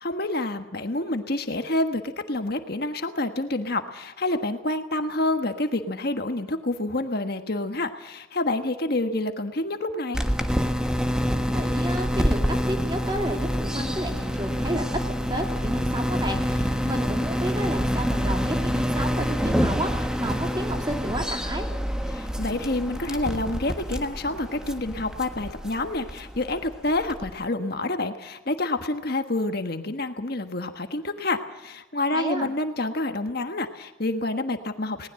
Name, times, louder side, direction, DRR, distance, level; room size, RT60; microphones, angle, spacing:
voice 1, 0.0-10.2 22.1-35.1, left 2 dB, 50° left, 7 dB, 1.4 m, -28 dB
sound 1, 10.1-27.4, equal, 5° right, 1.3 m, -27 dB
voice 2, 11.3-21.7 32.1-32.5, right 1 dB, 20° right, 3 dB, 2.6 m, -31 dB
20.0 x 19.0 x 7.7 m, 0.99 s
head